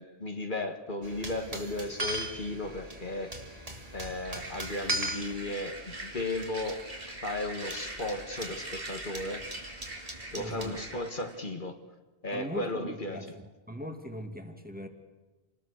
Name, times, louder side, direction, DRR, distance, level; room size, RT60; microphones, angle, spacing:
voice 1, 0.0-3.3 3.9-6.8 7.1-9.4 10.3-11.8 12.2-13.2, left 2 dB, 55° left, 6 dB, 1.8 m, -35 dB
sound 1, 1.0-10.8, right 1 dB, 35° right, 2.9 m, -40 dB
sound 2, 4.2-11.4, right 2 dB, 65° right, 3.2 m, -43 dB
voice 2, 10.3-10.8 12.3-14.9, equal, 10° right, 5 dB, 2.2 m, -40 dB
27.0 x 20.0 x 6.5 m, 1.2 s
omnidirectional pair, 1.0 m